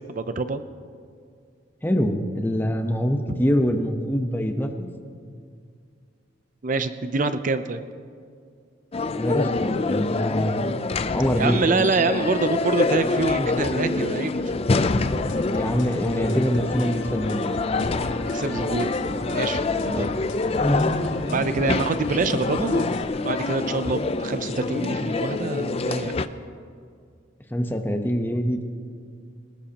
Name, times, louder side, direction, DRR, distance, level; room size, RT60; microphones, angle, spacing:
voice 1, 0.1-0.6 3.3-3.4 6.6-7.8 11.4-14.4 18.3-19.0 19.3-20.1 21.3-26.3, right 3 dB, 45° right, 11 dB, 0.5 m, -26 dB
voice 2, 1.8-4.9 9.1-11.9 13.4-13.6 15.5-17.6 19.9-20.2 20.6-21.0 27.5-28.6, equal, 10° left, 5 dB, 0.9 m, -25 dB
sound 1, 8.9-26.3, left 3 dB, 35° left, 0.5 m, -26 dB
sound 2, 15.0-23.0, left 2 dB, 75° left, 1.2 m, -36 dB
21.5 x 19.0 x 2.9 m, 2.2 s
head